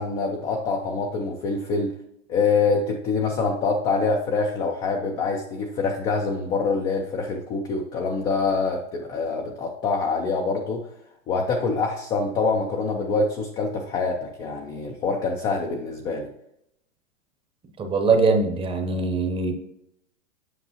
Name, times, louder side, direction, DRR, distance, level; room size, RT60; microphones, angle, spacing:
voice 1, 0.0-1.9 2.3-10.9 11.3-16.3, left 4 dB, 15° left, 1 dB, 0.3 m, -25 dB
voice 2, 17.8-19.5, right 4 dB, 15° right, 5 dB, 0.8 m, -22 dB
8.1 x 5.3 x 2.8 m, 0.77 s
hypercardioid pair, 135°, 37 cm